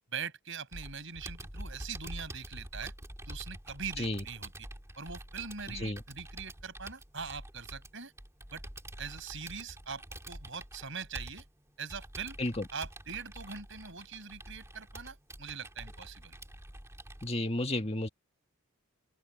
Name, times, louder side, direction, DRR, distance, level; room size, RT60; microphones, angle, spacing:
voice 1, 0.1-2.9 3.3-4.5 5.0-8.1 8.5-8.6 9.0-11.5 11.8-12.4 12.7-16.4, right 6 dB, 55° right, 7.7 m, -42 dB
Computer keyboard, 0.7-17.3, right 1 dB, 15° right, 2.8 m, -47 dB
voice 2, 17.2-18.1, left 1 dB, 25° left, 1.8 m, -32 dB
open air
head